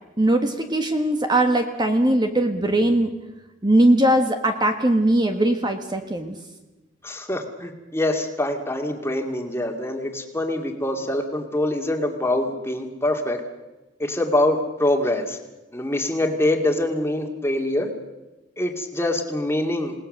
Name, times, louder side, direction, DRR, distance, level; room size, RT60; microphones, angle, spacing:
voice 1, 0.2-3.1 3.6-6.4, right 1 dB, 25° right, 5 dB, 1.6 m, -20 dB
voice 2, 7.0-13.4 14.0-15.4 15.7-17.9 18.6-19.9, left 1 dB, 15° left, 4 dB, 2.4 m, -24 dB
28.0 x 19.0 x 6.7 m, 1.1 s
head